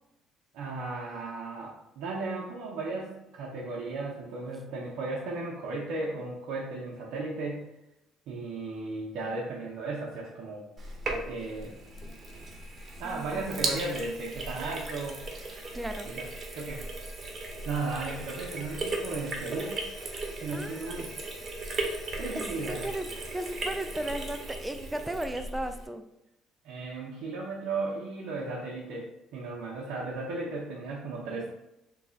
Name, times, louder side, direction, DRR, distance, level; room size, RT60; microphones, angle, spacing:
voice 1, 0.5-7.7 8.3-10.7 11.3-11.7 13.0-15.2 16.0-16.2 16.6-16.8 17.7-19.8 20.4-21.2 22.2-22.9 26.6-31.5, right 3 dB, 75° right, -4 dB, 0.6 m, -35 dB
Sink (filling or washing), 10.8-25.9, right 2 dB, 40° right, 0.8 m, -37 dB
voice 2, 13.0-13.4 15.7-16.1 20.5-21.1 22.3-26.0, right 1 dB, 10° right, 7 dB, 0.3 m, -36 dB
3.1 x 2.3 x 3.8 m, 0.87 s
supercardioid pair, 80°, 0 cm